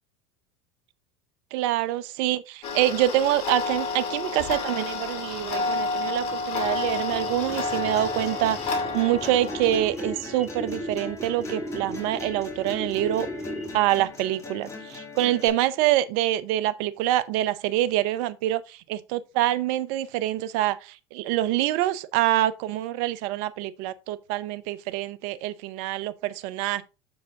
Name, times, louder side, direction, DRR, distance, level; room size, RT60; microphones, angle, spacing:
voice 1, 1.5-13.3 13.7-26.8, right 14 dB, 65° right, 0.7 m, -26 dB
Tick-tock, 2.6-9.8, left 3 dB, 50° left, 2.7 m, -30 dB
sound 1, 5.3-14.0, equal, 5° right, 1.9 m, -37 dB
sound 2, 7.5-15.5, left 4 dB, 20° left, 2.5 m, -41 dB
7.3 x 4.9 x 3.6 m
hypercardioid pair, 85°, 13 cm